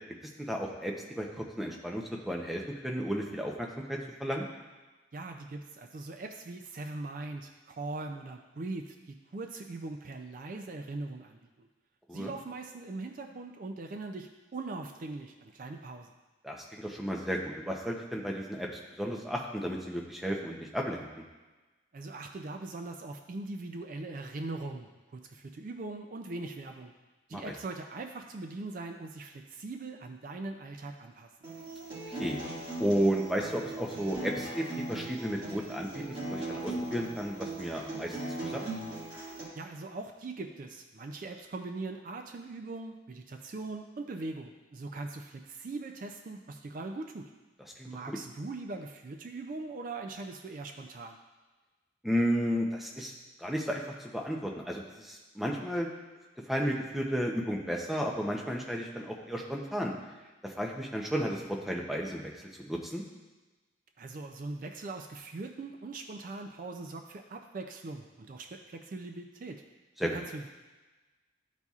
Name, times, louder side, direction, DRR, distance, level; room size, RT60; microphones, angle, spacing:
voice 1, 0.5-4.4 12.1-12.3 16.4-18.7 19.0-21.0 27.3-27.4 32.1-32.4 32.8-38.7 47.8-47.9 52.0-53.1 53.4-53.8 54.1-55.9 56.5-59.9 60.4-62.3 62.6-63.0 70.0-70.1, equal, ahead, -1 dB, 0.6 m, -33 dB
voice 2, 5.1-11.7 12.1-16.1 21.9-26.9 27.3-31.3 39.5-47.3 47.8-51.2 64.0-69.6 70.0-70.5, right 3 dB, 45° right, 4 dB, 0.4 m, -41 dB
Acoustic guitar, 31.4-39.4, right 2 dB, 25° right, 2.0 m, -39 dB
11.5 x 4.1 x 2.4 m, 1.2 s
head